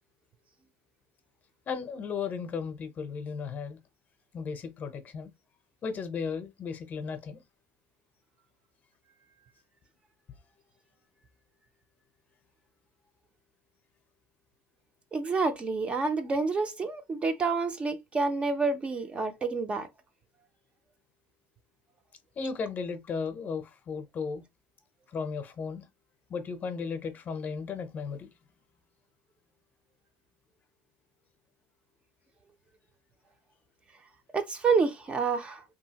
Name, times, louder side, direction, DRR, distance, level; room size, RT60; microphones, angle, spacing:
voice 1, 1.7-3.8 4.3-5.3 5.8-7.4 22.4-24.4 25.1-25.8 26.3-28.3, left 5 dB, 35° left, 0.6 m, -35 dB
voice 2, 15.1-19.9 34.3-35.6, right 4 dB, 20° right, 0.4 m, -28 dB
2.7 x 2.7 x 2.8 m
supercardioid pair, 130°, 5 cm